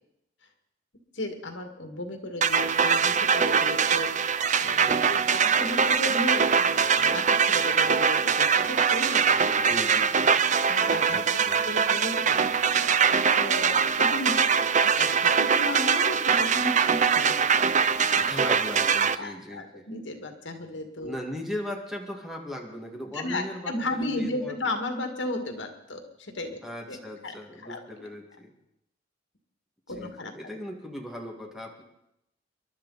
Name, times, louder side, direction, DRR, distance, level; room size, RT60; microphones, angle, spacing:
voice 1, 1.1-9.7 10.7-11.2 11.7-14.6 15.0-18.3 19.2-21.1 23.1-26.6 26.9-27.0 27.2-27.3 27.6-27.8 29.9-30.3, left 1 dB, 75° left, 5 dB, 2.1 m, -35 dB
sound 1, 2.4-19.2, right 6 dB, 40° right, 0.5 m, -23 dB
voice 2, 4.7-5.2 9.6-10.3 11.1-11.6 18.3-19.9 21.0-24.6 26.6-28.5 30.0-31.8, left 1 dB, ahead, 1 dB, 2.0 m, -38 dB
28.0 x 12.0 x 4.2 m, 0.83 s
head